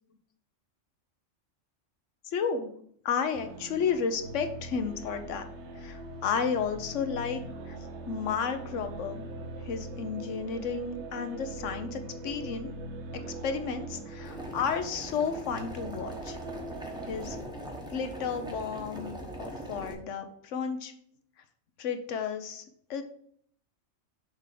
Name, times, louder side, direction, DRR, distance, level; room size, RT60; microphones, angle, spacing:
voice 1, 2.2-2.7 3.0-5.4 5.8-7.8 8.1-9.3 9.6-12.7 13.1-16.4 17.1-17.4 17.9-20.9 21.8-22.6 22.9-23.0, left 6 dB, 70° left, 8 dB, 1.0 m, -32 dB
sound 1, 3.3-17.4, right 2 dB, 65° right, 1.0 m, -41 dB
Boiling, 14.2-19.9, right 1 dB, 5° right, 0.9 m, -41 dB
6.7 x 3.5 x 4.9 m, 0.65 s
omnidirectional pair, 1.3 m